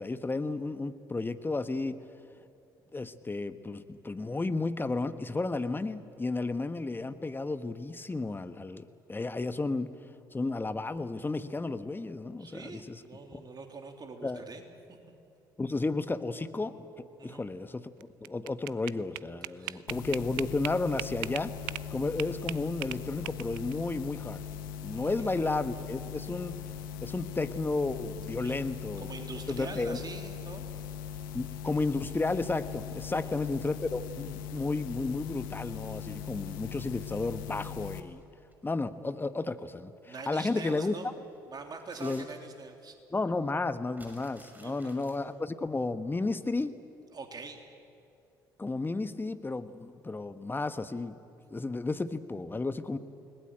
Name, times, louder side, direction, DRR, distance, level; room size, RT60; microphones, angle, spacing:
voice 1, 0.0-2.0 2.9-9.9 10.3-13.0 13.3-13.4 14.2-14.4 15.6-17.9 18.2-21.5 21.9-24.4 24.8-26.6 27.0-29.1 29.5-30.0 31.3-38.2 38.6-39.9 40.3-41.1 42.0-42.2 43.1-46.7 48.6-51.2 51.5-53.0, left 3 dB, 20° left, 11 dB, 1.3 m, -33 dB
voice 2, 12.4-14.6 17.2-17.4 19.6-19.9 24.9-25.4 28.4-28.7 29.0-30.7 33.1-33.4 40.1-41.1 41.5-43.0 44.6-44.7 47.1-47.6, right 4 dB, 35° right, 4 dB, 3.5 m, -44 dB
sound 1, 18.0-21.9 22.2-23.7, right 20 dB, 75° right, 0.5 m, -38 dB
sound 2, 19.9-38.0, left 8 dB, 75° left, 1.5 m, -40 dB
sound 3, 35.2-36.2 37.9-38.5 39.1-39.2 40.5-40.6 40.9-42.8 43.2-43.3 43.4-45.2, right 1 dB, 15° right, 6.0 m, -57 dB
29.5 x 19.5 x 9.0 m, 2.6 s
hypercardioid pair, 55°, 11 cm